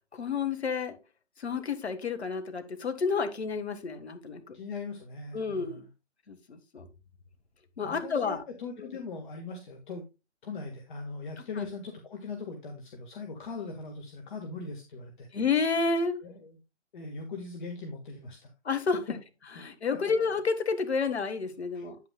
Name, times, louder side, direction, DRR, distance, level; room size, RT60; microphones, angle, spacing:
voice 1, 0.1-1.0 1.4-4.6 5.3-5.8 6.3-6.9 7.8-8.4 8.8-8.9 11.6-11.7 15.3-16.1 18.6-19.0 19.6-22.0, left 5 dB, 65° left, 1.6 m, -30 dB
voice 2, 4.5-5.9 7.8-10.0 10.4-15.3 16.2-16.6 16.9-18.5 21.7-21.9, left 4 dB, 45° left, 1.7 m, -40 dB
9.3 x 8.6 x 2.3 m
figure-of-eight pair, 135°, 35 cm